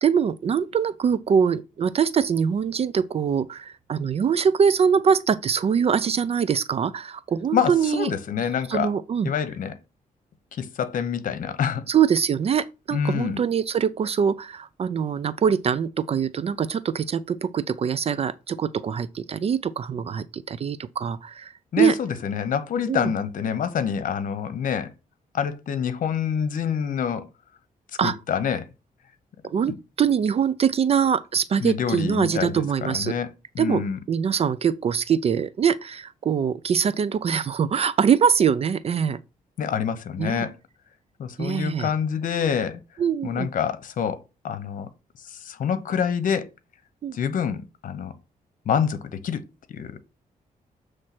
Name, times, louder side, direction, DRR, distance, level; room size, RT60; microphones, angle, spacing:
voice 1, 0.0-8.1 8.7-9.3 11.9-21.9 22.9-23.1 28.0-28.2 29.4-33.1 33.6-39.2 40.2-40.4 41.4-41.9 43.0-43.5 47.0-47.2, right 7 dB, 45° right, 0.4 m, -23 dB
voice 2, 7.5-8.9 9.2-9.7 10.5-11.8 12.9-13.4 21.7-24.9 25.3-27.3 28.0-28.7 31.6-32.5 32.8-33.3 33.5-34.0 39.6-40.5 41.2-42.8 43.2-44.2 44.4-44.9 45.3-46.5 47.1-48.1 48.7-49.4 49.7-49.9, left 7 dB, 65° left, 0.9 m, -26 dB
7.4 x 3.2 x 5.8 m
cardioid pair, 110°, 15 cm